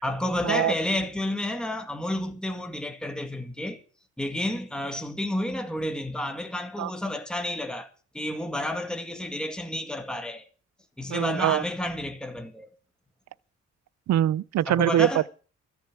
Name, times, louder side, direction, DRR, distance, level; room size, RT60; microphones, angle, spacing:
voice 1, 0.0-3.8 4.2-7.9 8.1-10.5 11.0-12.7 14.7-15.3, left 1 dB, 5° left, 2.0 m, -30 dB
voice 2, 11.1-11.6 14.1-15.3, right 12 dB, 65° right, 0.6 m, -23 dB
14.0 x 7.0 x 8.9 m
cardioid pair, 90°, 30 cm